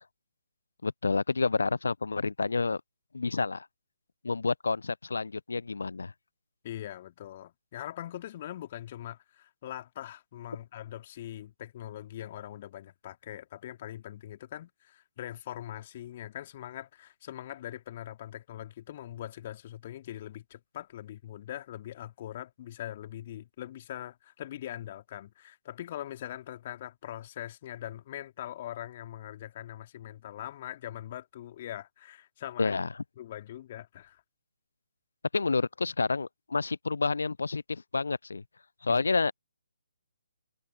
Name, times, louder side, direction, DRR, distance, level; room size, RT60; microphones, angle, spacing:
voice 1, 0.8-2.8 3.1-3.7 4.2-6.1 32.6-32.9 35.3-38.4 38.8-39.3, left 4 dB, 65° left, 0.4 m, -29 dB
voice 2, 6.6-32.8 33.2-34.2 38.9-39.0, left 12 dB, 35° left, 2.8 m, -42 dB
figure-of-eight pair, 140°, 0 cm